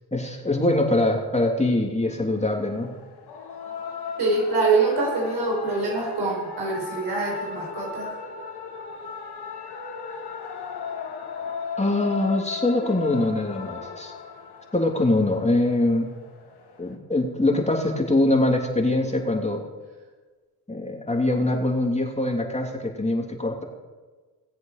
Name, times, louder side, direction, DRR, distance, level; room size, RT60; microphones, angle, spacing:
voice 1, 0.1-2.9 11.4-14.1 14.7-16.1 16.8-19.6 20.7-23.6, left 2 dB, 15° left, 1 dB, 3.1 m, -23 dB
sound 1, 2.3-17.0, left 5 dB, 75° left, 2.0 m, -37 dB
voice 2, 4.2-8.1, right 3 dB, 80° right, -1 dB, 4.8 m, -24 dB
18.0 x 7.9 x 6.8 m, 1.3 s
supercardioid pair, 50°, 39 cm